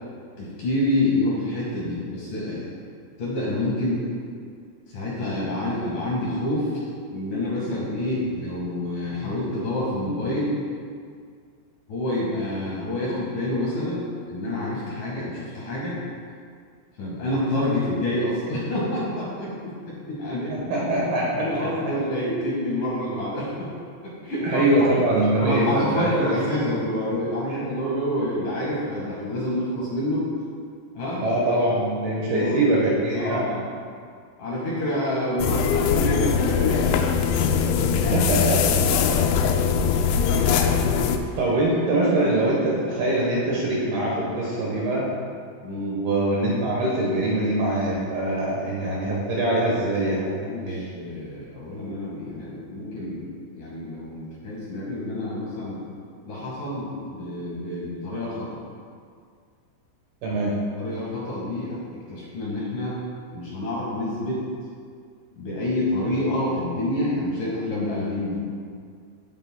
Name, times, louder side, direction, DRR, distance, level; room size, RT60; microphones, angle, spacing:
voice 1, 0.4-2.7 3.2-4.1 4.9-6.8 7.1-10.6 11.9-16.0 17.0-20.6 20.9-21.0 21.4-23.7 24.0-24.7 25.4-30.2 31.0-31.2 32.3-32.7 33.1-33.7 34.4-38.1 40.0-40.2 45.6-46.0 50.4-53.2 53.5-55.8 56.2-58.5 60.8-61.8 62.1-63.0 63.3-64.4 65.4-68.4, left 1 dB, 55° left, -7 dB, 2.7 m, -28 dB
voice 2, 20.5-21.7 24.4-26.4 31.2-33.5 37.9-39.1 40.4-40.8 41.4-45.1 45.9-50.8 60.2-60.5, right 1 dB, 65° right, -4 dB, 2.7 m, -23 dB
sound 1, 35.4-41.2, left 7 dB, 80° left, 2.8 m, -21 dB
16.5 x 8.1 x 2.3 m, 2.1 s
omnidirectional pair, 5.6 m